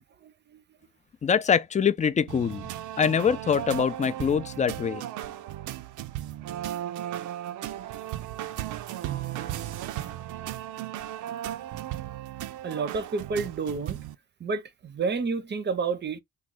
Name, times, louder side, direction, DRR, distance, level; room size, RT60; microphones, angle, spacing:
voice 1, 0.2-0.6 12.6-14.0 14.4-16.2, right 4 dB, 35° right, 0.6 m, -30 dB
voice 2, 1.2-2.7 3.0-5.0, left 7 dB, 25° left, 0.4 m, -24 dB
sound 1, 2.3-14.1, right 12 dB, 80° right, 0.5 m, -36 dB
3.1 x 2.2 x 3.7 m
cardioid pair, 90°, 30 cm